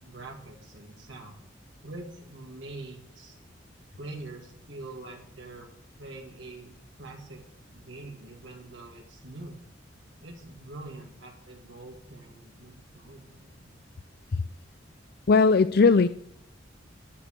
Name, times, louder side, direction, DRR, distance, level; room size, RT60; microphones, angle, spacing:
voice 1, 0.0-1.4 1.8-3.4 4.0-5.7 6.0-7.4 7.7-9.6 10.2-13.8, right 2 dB, 75° right, 0 dB, 2.4 m, -44 dB
voice 2, 15.3-16.1, left 4 dB, 55° left, 13 dB, 0.5 m, -19 dB
11.0 x 10.0 x 6.8 m, 0.65 s
head